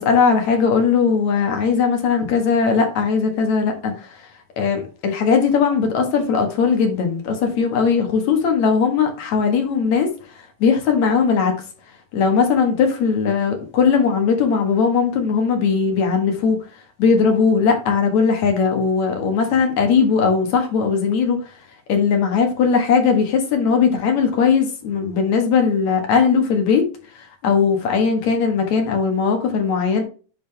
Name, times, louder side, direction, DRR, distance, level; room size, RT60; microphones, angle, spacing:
voice 1, 0.0-4.2 4.6-10.1 10.6-11.5 12.1-16.6 17.0-21.4 21.9-26.9 27.4-30.0, left 5 dB, 60° left, 2.5 m, -18 dB
10.5 x 3.9 x 3.3 m
omnidirectional pair, 4.2 m